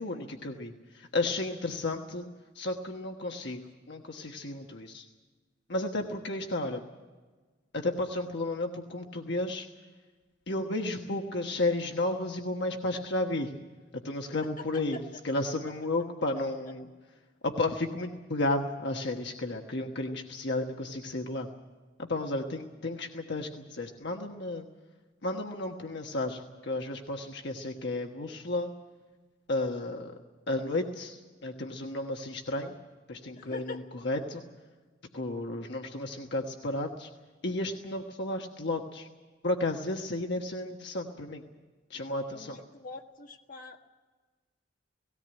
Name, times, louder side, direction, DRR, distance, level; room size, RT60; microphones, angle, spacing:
voice 1, 0.0-2.3 2.5-5.0 5.7-6.8 7.7-9.7 10.5-13.6 13.9-16.9 17.4-21.5 22.0-24.7 25.2-28.7 29.5-30.2 30.5-32.7 33.1-34.4 35.1-37.1 37.4-39.1 39.4-41.4 41.9-42.6, left 2 dB, 60° left, 3 dB, 1.3 m, -33 dB
voice 2, 33.4-33.8 42.3-43.8, left 3 dB, 45° left, 3 dB, 1.7 m, -44 dB
18.5 x 17.5 x 8.9 m, 1.3 s
head